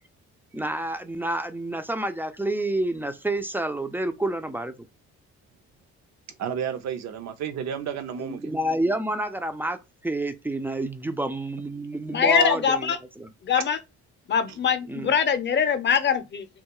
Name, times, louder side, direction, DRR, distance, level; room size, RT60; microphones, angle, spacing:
voice 1, 0.5-4.9 8.2-13.3 14.9-15.1, right 1 dB, 5° right, 0.3 m, -29 dB
voice 2, 6.4-8.5, right 8 dB, 65° right, 0.6 m, -31 dB
voice 3, 12.1-13.0 13.4-13.8 14.3-16.5, left 7 dB, 35° left, 0.6 m, -22 dB
2.3 x 2.2 x 2.9 m
cardioid pair, 90°, 30 cm